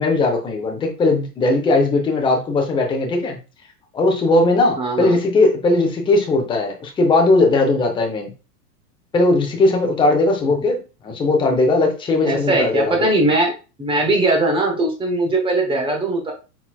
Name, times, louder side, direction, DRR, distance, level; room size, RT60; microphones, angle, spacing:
voice 1, 0.0-3.4 3.9-8.3 9.1-13.1, left 2 dB, 10° left, 0.6 m, -18 dB
voice 2, 4.8-5.2 10.5-10.6 12.2-13.5 13.8-16.3, right 2 dB, 10° right, 0.9 m, -20 dB
4.3 x 4.1 x 2.3 m
hypercardioid pair, 130°, 49 cm